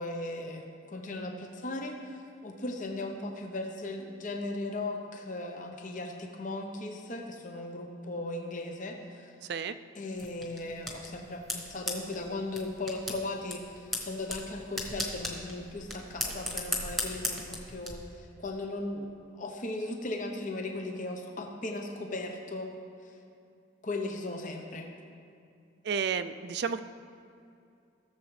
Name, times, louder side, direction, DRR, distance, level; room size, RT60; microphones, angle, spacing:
voice 1, 0.0-9.3 9.9-22.8 23.0-23.1 23.8-24.9, left 2 dB, 40° left, 3 dB, 0.8 m, -37 dB
sound 1, 10.2-17.9, left 1 dB, ahead, 1.2 m, -37 dB
voice 2, 25.8-26.8, right 6 dB, 55° right, 11 dB, 0.4 m, -31 dB
16.5 x 7.1 x 3.3 m, 2.5 s
head